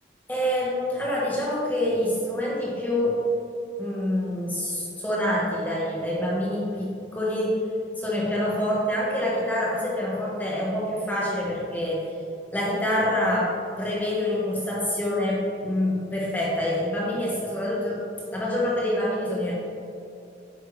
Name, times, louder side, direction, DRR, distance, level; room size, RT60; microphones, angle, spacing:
voice 1, 0.3-3.3 3.8-7.6 8.0-12.1 12.5-18.0 18.3-19.5, left 1 dB, 10° left, -5 dB, 1.2 m, -26 dB
9.4 x 5.6 x 3.2 m, 2.7 s
head